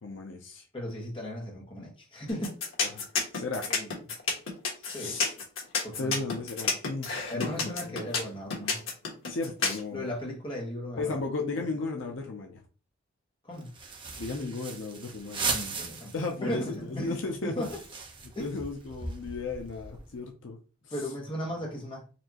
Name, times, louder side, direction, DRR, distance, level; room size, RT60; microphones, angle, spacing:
voice 1, 0.0-0.7 2.9-3.0 3.3-3.7 5.0-5.3 6.0-7.9 9.3-10.1 11.0-12.6 14.2-15.5 16.1-17.6 18.4-20.6 20.8-20.9, left 3 dB, 65° left, 0.6 m, -35 dB
voice 2, 0.7-2.6 3.7-3.9 4.8-5.2 5.8-6.2 7.3-8.8 9.9-11.1 13.4-13.7 15.4-16.1 16.4-17.2 17.4-17.8 18.3-18.6 20.9-22.1, equal, 25° left, 1.2 m, -36 dB
sound 1, 2.3-9.8, left 4 dB, 85° left, 1.2 m, -30 dB
sound 2, 13.6-16.3 16.7-16.8 17.0-20.2, right 4 dB, 25° right, 0.7 m, -37 dB
4.3 x 2.7 x 2.9 m
head